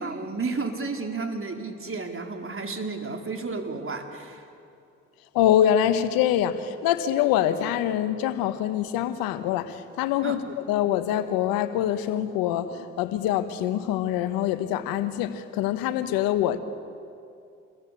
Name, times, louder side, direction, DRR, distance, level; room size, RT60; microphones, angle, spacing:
voice 1, 0.0-4.4 10.2-10.4, right 3 dB, 40° right, 4.3 m, -32 dB
voice 2, 5.3-16.6, left 11 dB, 80° left, 1.3 m, -25 dB
28.5 x 22.0 x 8.5 m
hypercardioid pair, 50°, 34 cm